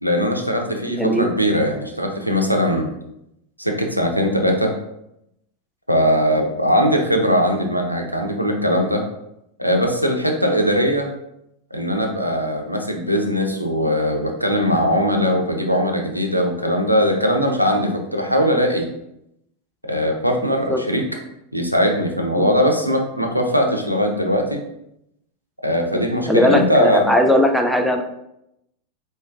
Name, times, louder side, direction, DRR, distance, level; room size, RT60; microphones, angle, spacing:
voice 1, 0.0-2.9 3.6-4.7 5.9-9.0 9.6-11.1 11.7-18.9 19.8-21.0 21.5-24.6 25.6-27.1, equal, 90° right, 2 dB, 0.5 m, -20 dB
voice 2, 1.0-1.3 20.7-20.8 22.4-22.5 25.9-28.0, equal, ahead, 4 dB, 0.4 m, -18 dB
4.3 x 3.1 x 2.3 m, 0.81 s
figure-of-eight pair, 90°, 0 cm